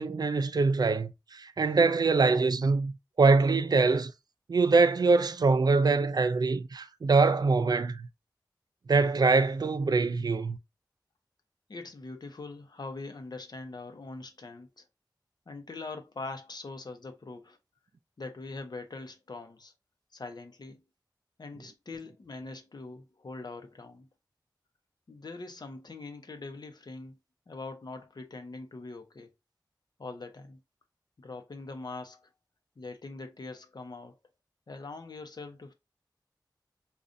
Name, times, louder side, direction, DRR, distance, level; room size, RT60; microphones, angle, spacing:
voice 1, 0.0-2.9 3.2-4.1 4.5-8.1 8.9-10.6, right 4 dB, 65° right, 0.4 m, -24 dB
voice 2, 11.7-14.8 15.5-17.6 18.2-19.7 20.1-20.8 21.4-24.1 25.1-27.2 27.5-29.3 30.0-30.6 31.2-32.3 32.8-34.2 34.7-35.7, left 3 dB, 65° left, 0.8 m, -42 dB
5.0 x 2.4 x 2.6 m
wide cardioid pair, 70°, 8 cm